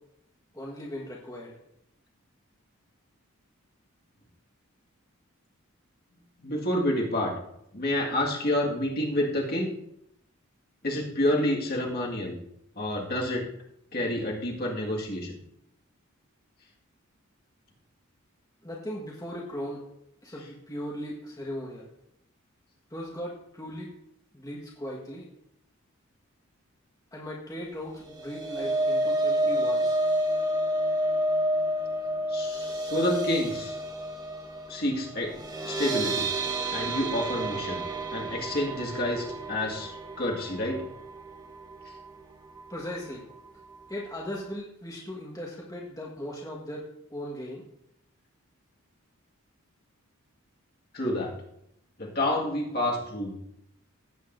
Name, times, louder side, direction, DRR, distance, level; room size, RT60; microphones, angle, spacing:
voice 1, 0.5-1.5 18.6-19.8 20.2-21.9 22.9-23.9 24.3-25.3 27.1-30.0 42.7-43.2 43.9-47.6, equal, 15° left, -4 dB, 1.4 m, -38 dB
voice 2, 6.4-7.3 7.7-9.7 10.8-12.3 12.8-13.4 13.9-15.4 32.3-33.7 34.7-35.4 35.6-36.3 36.7-37.8 38.1-39.9 40.2-40.8 50.9-51.3 52.0-53.4, left 1 dB, 45° left, -2 dB, 1.8 m, -28 dB
sound 1, 28.0-42.2 42.6-42.8 43.1-43.2, right 1 dB, 20° right, 1.0 m, -30 dB
16.5 x 8.0 x 2.6 m, 0.78 s
head